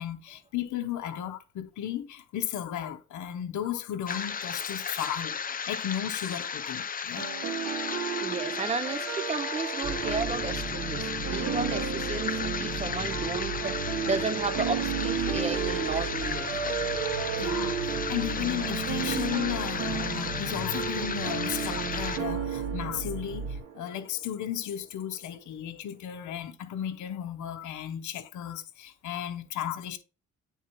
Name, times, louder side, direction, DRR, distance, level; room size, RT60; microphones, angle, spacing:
voice 1, 0.0-7.3 17.4-30.0, left 10 dB, 75° left, 0.8 m, -35 dB
sound 1, 4.1-22.2, left 6 dB, 30° left, 0.5 m, -35 dB
sound 2, 7.2-24.1, right 7 dB, 55° right, 1.8 m, -33 dB
voice 2, 8.2-16.9 17.3-17.5, right 4 dB, 20° right, 0.6 m, -34 dB
sound 3, 9.8-23.6, right 2 dB, 40° right, 2.2 m, -38 dB
9.1 x 3.6 x 3.0 m
cardioid pair, 90°, 30 cm